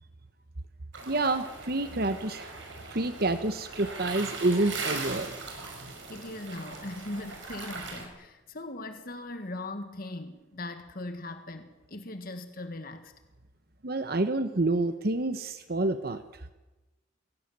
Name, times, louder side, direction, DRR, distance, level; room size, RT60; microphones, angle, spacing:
sound 1, 0.9-8.1, right 3 dB, 70° right, 5.4 m, -40 dB
voice 1, 1.1-2.5 2.9-5.3 13.8-16.2, right 2 dB, 50° right, 10 dB, 1.0 m, -28 dB
voice 2, 6.1-13.1, left 2 dB, 50° left, 8 dB, 1.6 m, -39 dB
22.5 x 17.5 x 9.3 m, 1.1 s
head